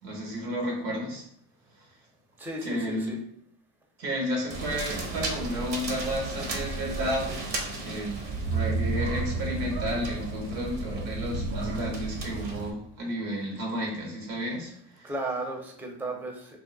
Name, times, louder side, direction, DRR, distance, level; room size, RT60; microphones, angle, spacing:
voice 1, 0.0-1.2 2.6-3.2 4.0-7.4 7.8-15.1, equal, 85° right, 0 dB, 1.3 m, -32 dB
voice 2, 2.4-3.2 15.0-16.6, right 2 dB, 5° right, 2 dB, 0.6 m, -34 dB
sound 1, 4.5-12.7, right 3 dB, 65° right, 1.0 m, -32 dB
2.8 x 2.0 x 3.9 m, 0.67 s
supercardioid pair, 80°, 45 cm